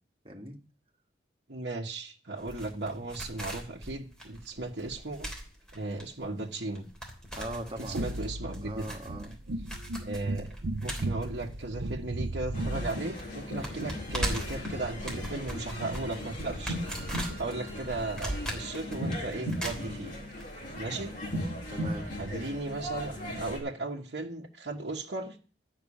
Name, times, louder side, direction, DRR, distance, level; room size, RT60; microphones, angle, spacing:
voice 1, 1.5-5.3 5.7-6.9 7.8-8.9 10.0-10.5 10.8-16.8 17.1-20.1 20.7-21.1 22.2-25.4, right 2 dB, 65° right, -3 dB, 1.3 m, -36 dB
sound 1, 2.4-12.5 12.7-12.8 13.2-20.5 20.7-20.8, right 1 dB, 5° left, 3.2 m, -39 dB
voice 2, 7.3-8.1 8.6-9.4 18.9-19.2 21.7-22.1, right 1 dB, 30° right, 1 dB, 2.0 m, -40 dB
sound 2, 7.9-12.9, right 2 dB, 90° right, 0.7 m, -35 dB
sound 3, 12.5-23.6, equal, 45° left, 4.7 m, -37 dB
12.5 x 6.0 x 8.5 m, 0.38 s
head